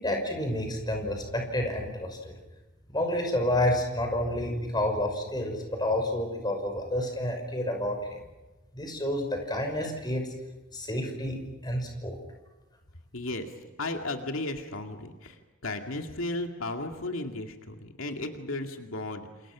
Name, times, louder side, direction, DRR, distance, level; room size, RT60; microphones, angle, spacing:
voice 1, 0.0-2.3 2.9-8.2 8.7-10.3 10.7-11.4 11.6-12.2, left 1 dB, 20° left, 4 dB, 5.9 m, -29 dB
voice 2, 13.1-13.5 13.8-19.5, left 2 dB, 80° left, 4 dB, 2.3 m, -35 dB
29.0 x 28.0 x 6.3 m, 1.1 s
head